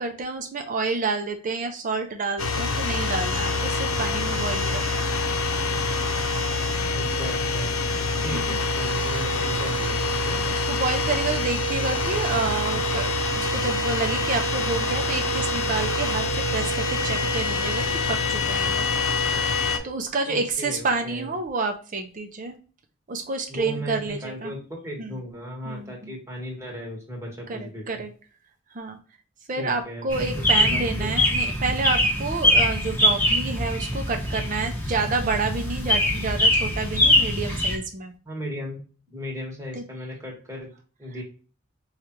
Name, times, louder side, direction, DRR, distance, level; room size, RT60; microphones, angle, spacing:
voice 1, 0.0-5.0 8.1-8.6 10.5-16.3 16.5-18.9 19.8-22.5 23.1-24.5 25.0-25.2 25.7-26.1 27.5-28.1 28.7-29.0 29.5-38.1 39.7-39.8, right 3 dB, 40° right, 5 dB, 0.5 m, -29 dB
sound 1, 2.4-19.8, left 3 dB, 90° left, 0.7 m, -25 dB
voice 2, 6.9-7.7 8.2-10.4 20.3-21.3 23.5-28.0 29.6-30.1 30.3-31.1 38.2-38.8 39.1-40.7 41.0-41.2, equal, 15° right, -2 dB, 1.2 m, -36 dB
sound 2, 30.1-37.8, left 1 dB, 10° left, 1.0 m, -23 dB
4.8 x 2.4 x 2.9 m, 0.38 s
head